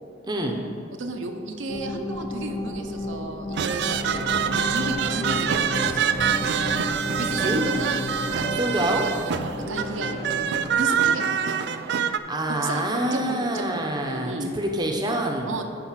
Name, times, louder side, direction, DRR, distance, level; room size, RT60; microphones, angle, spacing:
voice 1, 0.3-0.6 7.4-7.6 8.6-9.0 12.3-15.5, right 1 dB, 20° right, 2 dB, 0.7 m, -26 dB
voice 2, 0.9-6.1 7.2-8.5 9.4-11.6 12.6-14.5 15.5-15.6, right 2 dB, 70° right, 4 dB, 0.7 m, -33 dB
sound 1, 1.7-10.9, left 1 dB, 30° left, 0.5 m, -32 dB
sound 2, 3.5-12.2, right 7 dB, 55° right, 0.3 m, -26 dB
10.5 x 4.4 x 5.8 m, 2.6 s
head